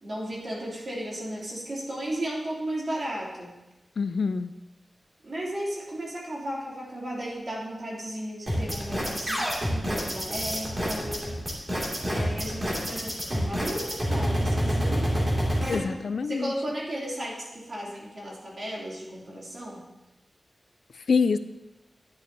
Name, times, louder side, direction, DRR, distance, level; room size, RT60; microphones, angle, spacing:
voice 1, 0.0-3.5 5.2-15.3 16.2-19.9, right 1 dB, 55° right, -5 dB, 2.6 m, -35 dB
voice 2, 4.0-4.5 15.7-16.5 21.1-21.4, left 5 dB, 70° left, 12 dB, 0.4 m, -25 dB
sound 1, 8.5-15.7, equal, 30° right, 2.3 m, -27 dB
10.5 x 9.4 x 2.7 m, 1.0 s
wide cardioid pair, 95°, 0 cm